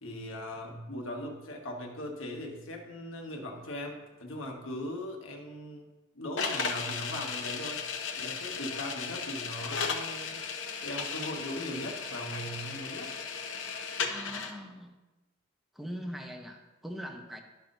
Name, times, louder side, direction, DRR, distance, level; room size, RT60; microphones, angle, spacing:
voice 1, 0.0-5.9 6.1-7.8 8.2-10.4 10.8-13.1, left 1 dB, 90° left, 1 dB, 1.4 m, -39 dB
sound 1, 6.4-14.5, left 5 dB, 70° left, 0.9 m, -35 dB
voice 2, 14.0-14.9 15.7-17.4, equal, ahead, 3 dB, 0.7 m, -41 dB
11.5 x 5.7 x 2.6 m, 1.0 s
head